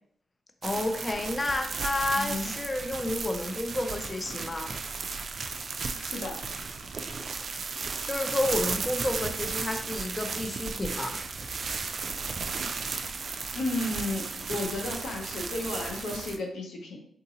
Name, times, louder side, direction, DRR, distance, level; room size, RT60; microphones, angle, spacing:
voice 1, 0.6-4.7 8.0-11.2, left 2 dB, 25° left, 5 dB, 0.4 m, -30 dB
sound 1, 0.6-16.4, right 4 dB, 55° right, 0.3 m, -35 dB
voice 2, 2.1-2.5 6.0-6.5 13.5-17.0, left 2 dB, 90° left, 2 dB, 0.6 m, -33 dB
3.7 x 2.7 x 2.7 m, 0.67 s
cardioid pair, 85°, 0 cm